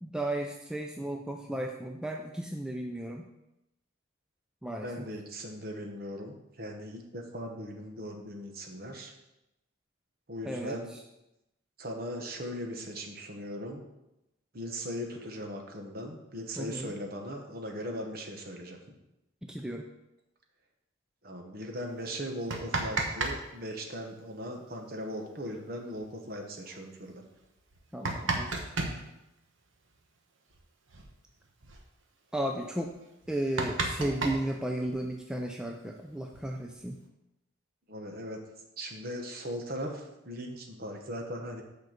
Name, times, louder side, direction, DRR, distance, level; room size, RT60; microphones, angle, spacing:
voice 1, 0.0-3.3 4.6-4.9 10.4-11.0 16.6-16.9 19.4-19.9 27.9-28.6 32.3-33.0 33.3-37.0, right 1 dB, 5° right, 2 dB, 0.4 m, -34 dB
voice 2, 4.8-9.1 10.3-10.9 11.8-13.8 14.5-18.8 21.2-27.2 37.9-38.4 38.8-41.6, equal, 45° right, 2 dB, 1.2 m, -39 dB
sound 1, 22.3-23.4 23.6-23.7 25.5-25.6 25.9-26.0 26.7-26.8 27.6-29.0 30.5-30.6 30.9-31.1 31.4-31.8 32.3-32.4 32.8-32.9 33.2-35.1 36.0-36.8, right 3 dB, 70° right, 1.1 m, -33 dB
6.4 x 5.2 x 6.7 m, 0.91 s
head